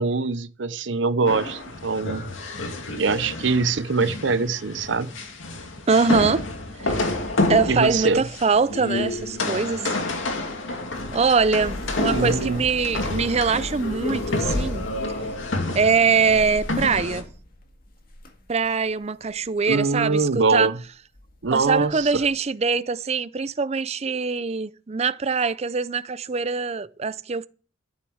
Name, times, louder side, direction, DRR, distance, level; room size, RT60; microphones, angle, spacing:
voice 1, 0.0-2.3 3.0-5.1 7.7-8.2 12.1-12.6 19.7-20.7 21.4-22.2, right 4 dB, 70° right, 0.7 m, -23 dB
sound 1, 1.3-17.2, left 2 dB, 80° left, 2.4 m, -29 dB
voice 2, 5.9-6.4 6.8-7.0 7.5-10.0 11.1-14.9 15.7-17.2 18.5-20.7 21.5-27.5, right 5 dB, 35° right, 0.5 m, -23 dB
sound 2, 10.0-19.6 19.9-20.5 20.9-21.0 21.1-22.3, left 1 dB, 50° left, 1.9 m, -39 dB
13.0 x 6.6 x 7.9 m
head